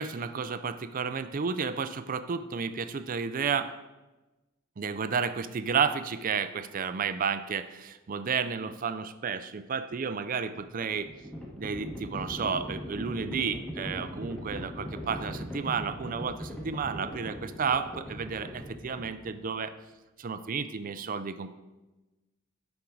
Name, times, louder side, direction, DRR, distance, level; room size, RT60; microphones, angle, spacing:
voice 1, 0.0-3.7 4.8-11.1 11.5-19.7 20.2-21.5, right 6 dB, 40° right, 11 dB, 0.4 m, -32 dB
Livestock farm animals working animals, 10.5-19.5, equal, 5° left, 1.3 m, -40 dB
10.0 x 6.0 x 3.9 m, 1.1 s
head